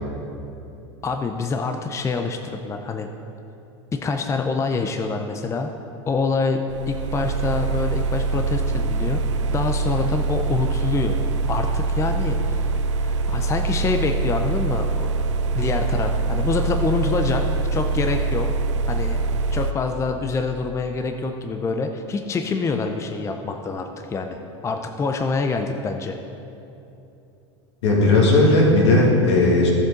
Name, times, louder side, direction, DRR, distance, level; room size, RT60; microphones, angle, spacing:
voice 1, 1.0-3.1 3.9-5.7 6.1-9.2 9.5-11.2 11.5-12.7 13.0-15.1 15.5-17.4 17.7-18.5 18.9-19.2 19.5-26.2, left 4 dB, 20° left, 5 dB, 0.6 m, -26 dB
sound 1, 6.7-19.7, right 4 dB, 80° right, 0.4 m, -24 dB
voice 2, 27.8-29.7, left 2 dB, 75° left, -2 dB, 2.2 m, -16 dB
12.0 x 7.2 x 3.9 m, 2.9 s
hypercardioid pair, 95°, 15 cm